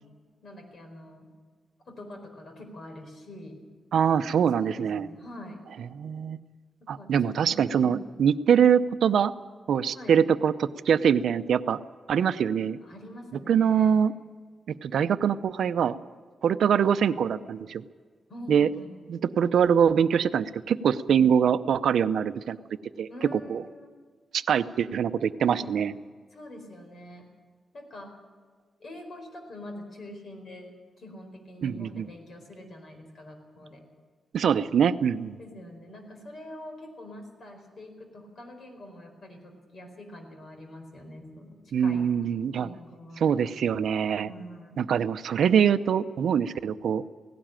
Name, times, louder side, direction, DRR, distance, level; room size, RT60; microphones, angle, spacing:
voice 1, 0.4-1.3 1.9-3.6 4.6-5.6 6.8-8.0 9.9-10.2 12.8-13.9 18.3-18.9 21.1-21.3 23.1-23.9 25.5-25.7 26.3-27.3 27.7-28.2 28.8-33.8 35.4-42.1 42.6-43.3 44.2-44.8, left 1 dB, 45° left, 4 dB, 4.7 m, -44 dB
voice 2, 3.9-5.1 6.0-6.4 6.9-9.3 9.7-11.8 12.1-12.8 13.5-14.1 14.7-16.0 16.4-17.8 18.5-18.7 19.1-22.6 23.0-23.6 24.3-25.9 31.6-32.1 34.3-35.4 41.7-42.7 43.2-44.3 44.8-47.0, right 8 dB, 75° right, 12 dB, 0.6 m, -23 dB
17.5 x 17.5 x 9.0 m, 1.5 s
wide cardioid pair, 155°, 0 cm